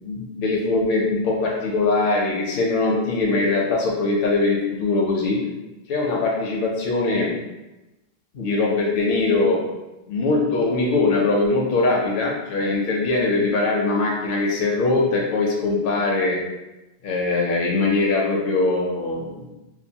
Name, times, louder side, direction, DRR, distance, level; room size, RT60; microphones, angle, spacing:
voice 1, 0.0-5.4 5.9-7.3 8.3-9.6 10.1-16.4 17.0-19.5, left 3 dB, 65° left, -2 dB, 0.7 m, -21 dB
2.9 x 2.2 x 2.7 m, 1.0 s
omnidirectional pair, 1.0 m